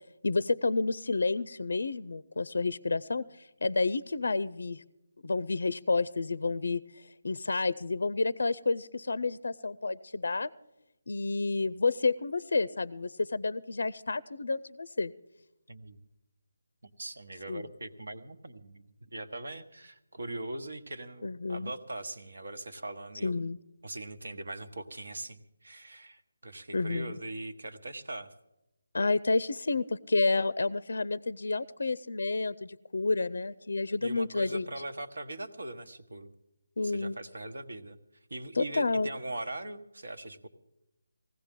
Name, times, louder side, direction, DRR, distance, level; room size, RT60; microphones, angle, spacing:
voice 1, 0.2-3.2 3.6-4.8 5.2-6.8 7.2-10.5 11.1-15.1 17.5-17.7 21.2-21.7 23.2-23.6 26.7-27.2 28.9-34.7 36.8-37.2 38.6-39.1, left 3 dB, 65° left, 19 dB, 0.4 m, -30 dB
voice 2, 15.7-16.0 16.8-23.3 23.8-28.3 34.0-36.3 36.8-38.0 38.3-40.5, right 2 dB, 70° right, 8 dB, 1.3 m, -41 dB
19.5 x 16.0 x 3.7 m, 0.92 s
figure-of-eight pair, 160°, 0 cm